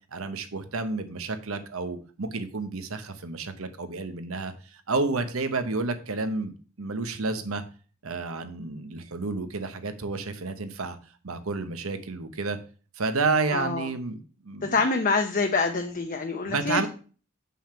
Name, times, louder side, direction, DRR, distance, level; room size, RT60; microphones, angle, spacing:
voice 1, 0.1-6.5 6.8-7.6 8.0-11.0 11.2-12.6 13.0-14.8 16.4-16.9, right 3 dB, 90° right, 9 dB, 1.0 m, -30 dB
voice 2, 13.5-13.9 14.6-16.9, left 4 dB, 40° left, 5 dB, 0.6 m, -26 dB
7.5 x 5.6 x 4.4 m, 0.39 s
head